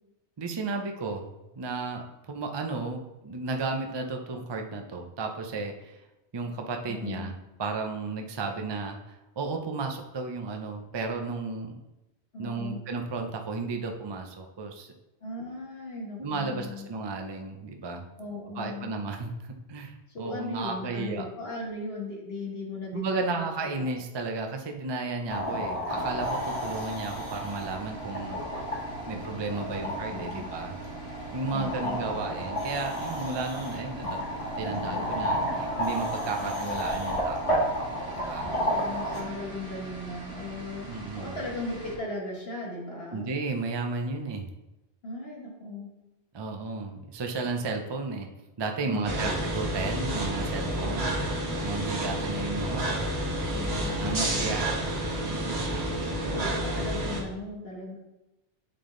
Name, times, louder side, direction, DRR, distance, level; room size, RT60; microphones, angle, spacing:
voice 1, 0.4-1.3 1.5-6.0 6.3-11.7 12.4-14.9 16.2-18.1 18.6-21.3 22.9-28.4 29.1-30.8 31.3-34.3 34.6-37.8 38.1-38.5 40.8-41.4 43.1-44.5 46.3-48.3 48.6-51.1 51.6-53.0 54.0-54.7 55.2-55.7, right 3 dB, 30° right, 3 dB, 0.5 m, -33 dB
voice 2, 6.9-7.3 12.3-12.8 15.2-16.9 18.2-18.9 20.1-23.9 29.8-30.5 31.5-32.0 36.4-36.8 38.6-43.3 45.0-45.9 48.8-49.4 50.6-50.9 53.5-54.6 55.9-58.0, left 2 dB, 60° left, -3 dB, 1.6 m, -38 dB
sound 1, 25.3-39.2, equal, 30° left, 1.5 m, -32 dB
sound 2, 25.9-42.0, right 3 dB, 50° right, 2.4 m, -42 dB
sound 3, 49.0-57.2, right 1 dB, 65° right, 1.6 m, -30 dB
8.6 x 3.5 x 3.8 m, 0.96 s
omnidirectional pair, 1.2 m